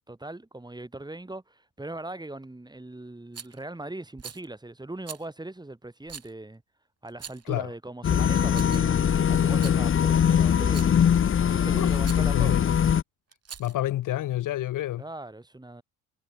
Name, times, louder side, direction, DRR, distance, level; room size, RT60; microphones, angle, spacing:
voice 1, 0.1-6.6 7.0-9.0 9.3-11.0 11.5-12.6 15.0-15.8, right 2 dB, 10° right, 3.6 m, -40 dB
Rattle, 3.3-3.6 4.2-4.4 5.1-5.2 6.1-6.3 7.1-7.5 8.3-9.0 9.5-9.8 10.6-11.0 12.0-12.3 13.3-13.9, right 7 dB, 35° right, 4.3 m, -42 dB
sound 1, 8.0-13.0, left 8 dB, 30° left, 1.2 m, -22 dB
voice 2, 11.7-12.6 13.6-15.0, left 14 dB, 50° left, 1.5 m, -29 dB
figure-of-eight pair, 50°, 41 cm